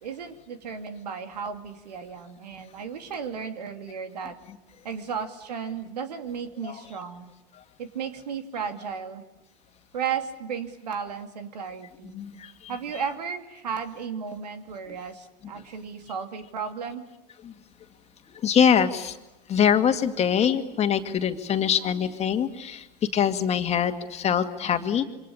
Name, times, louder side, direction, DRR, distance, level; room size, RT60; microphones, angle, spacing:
voice 1, 0.0-4.4 4.8-7.3 7.8-9.2 9.9-12.1 12.7-17.0, right 6 dB, 85° right, 7 dB, 2.7 m, -34 dB
voice 2, 12.0-12.7 14.9-15.0 17.4-17.5 18.3-19.2 19.5-22.9 23.1-25.0, left 8 dB, 35° left, 7 dB, 2.2 m, -24 dB
27.0 x 24.5 x 8.7 m, 0.96 s
hypercardioid pair, 95°, 20 cm